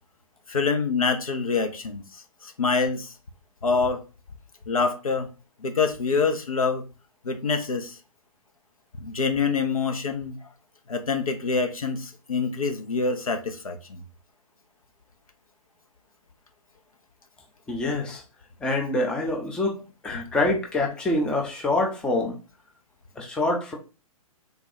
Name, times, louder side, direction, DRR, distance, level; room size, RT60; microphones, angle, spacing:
voice 1, 0.5-3.1 3.6-4.0 4.7-5.3 5.6-6.8 7.2-8.0 9.0-10.4 10.9-14.0, left 4 dB, 70° left, 0.7 m, -26 dB
voice 2, 17.7-18.2 18.6-22.4 23.2-23.7, left 2 dB, 5° left, 0.5 m, -26 dB
3.5 x 2.3 x 4.1 m
figure-of-eight pair, 120°, 19 cm